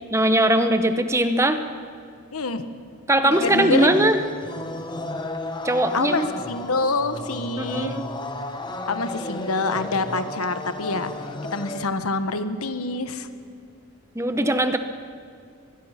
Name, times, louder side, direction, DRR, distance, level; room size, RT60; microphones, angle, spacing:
voice 1, 0.1-1.6 3.1-4.2 5.6-6.3 7.6-8.0 14.1-14.8, right 1 dB, 15° right, 8 dB, 0.9 m, -20 dB
voice 2, 2.3-2.7 3.2-4.2 5.9-8.0 8.9-11.1 11.5-13.3, left 3 dB, 85° left, 10 dB, 1.3 m, -26 dB
sound 1, 3.3-11.9, left 2 dB, 20° left, 1.2 m, -33 dB
24.0 x 21.0 x 5.9 m, 2.4 s
head